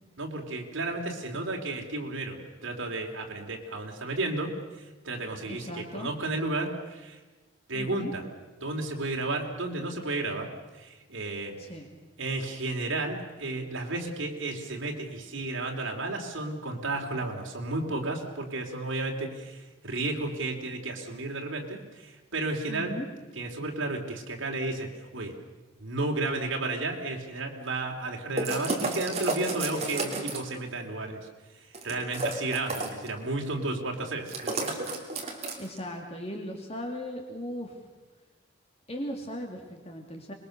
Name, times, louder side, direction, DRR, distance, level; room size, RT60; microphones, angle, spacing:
voice 1, 0.2-7.2 7.7-8.3 8.6-11.6 12.2-23.0 23.4-25.3 25.8-31.3 31.5-34.8, right 2 dB, 75° right, 1 dB, 3.4 m, -33 dB
voice 2, 5.5-6.1 7.7-8.1 11.6-11.9 22.7-23.1 35.6-37.8 38.9-40.3, equal, 30° left, 2 dB, 2.4 m, -37 dB
sound 1, 28.4-30.6 31.7-33.1 34.3-35.8, right 2 dB, 30° right, 2.9 m, -31 dB
25.5 x 21.5 x 6.7 m, 1.2 s
head